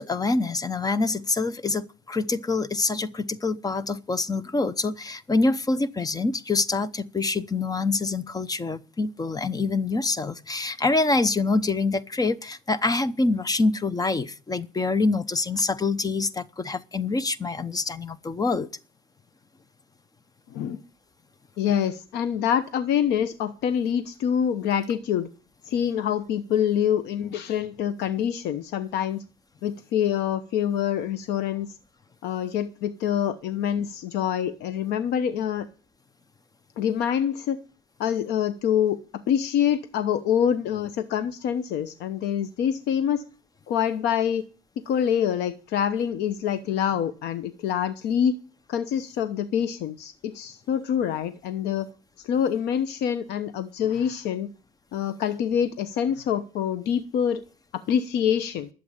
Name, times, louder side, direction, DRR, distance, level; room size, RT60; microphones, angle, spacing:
voice 1, 0.0-18.7, left 3 dB, 20° left, 0.8 m, -25 dB
voice 2, 20.5-20.8 21.6-25.3 25.6-29.2 29.6-31.8 32.2-35.7 36.8-37.6 38.0-43.2 43.7-44.4 44.9-48.4 48.7-51.9 52.2-54.5 54.9-57.4 57.7-58.7, left 9 dB, 80° left, 1.0 m, -26 dB
12.0 x 7.7 x 9.8 m
cardioid pair, 110°, 17 cm